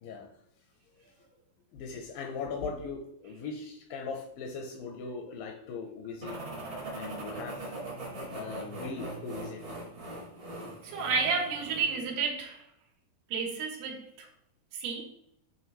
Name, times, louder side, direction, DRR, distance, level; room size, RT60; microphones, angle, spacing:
voice 1, 1.7-6.4 6.9-7.7 8.3-9.6, left 4 dB, 80° left, 3 dB, 2.1 m, -39 dB
sound 1, 6.2-12.0, right 2 dB, 70° right, 0.7 m, -41 dB
voice 2, 10.8-12.6 13.3-14.3 14.7-15.0, right 5 dB, 90° right, 1 dB, 3.2 m, -31 dB
8.4 x 3.7 x 3.0 m, 0.74 s
omnidirectional pair, 4.4 m